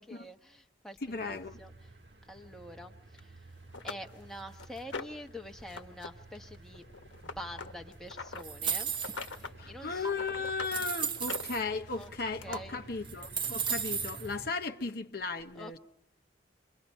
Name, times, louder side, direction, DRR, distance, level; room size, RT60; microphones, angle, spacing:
voice 1, 0.0-1.9 2.3-3.5 3.8-6.8 7.2-8.9 9.3-10.1 11.9-12.1 12.4-12.8 15.5-15.8, left 1 dB, ahead, 1.1 m, -46 dB
voice 2, 1.0-1.6 9.6-15.8, left 4 dB, 55° left, 0.8 m, -36 dB
sound 1, 1.1-14.5, right 2 dB, 70° right, 1.5 m, -52 dB
sound 2, 3.2-3.3 3.7-5.3 5.7-6.1 6.3-8.4 8.9-9.6 9.9-10.8 11.2-12.6 13.5-13.6 14.1-14.2, left 4 dB, 85° left, 1.2 m, -42 dB
sound 3, 8.4-9.4 10.1-10.2 10.6-11.6 12.5-12.6 13.0-14.3, right 7 dB, 25° right, 0.8 m, -34 dB
28.0 x 23.0 x 5.4 m
head